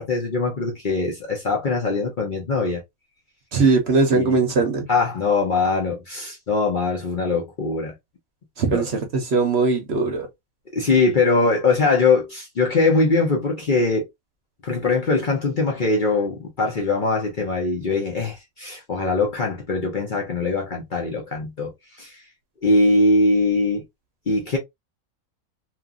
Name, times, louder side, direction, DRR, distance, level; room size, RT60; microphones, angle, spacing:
voice 1, 0.0-2.8 4.1-4.2 4.9-7.9 8.7-8.8 10.7-14.1 14.6-21.7 22.0-22.2 22.6-23.8 24.3-24.6, left 3 dB, 45° left, 0.7 m, -21 dB
voice 2, 3.5-4.9 8.6-10.3, right 4 dB, 60° right, 0.9 m, -20 dB
2.8 x 2.4 x 2.4 m
omnidirectional pair, 1.5 m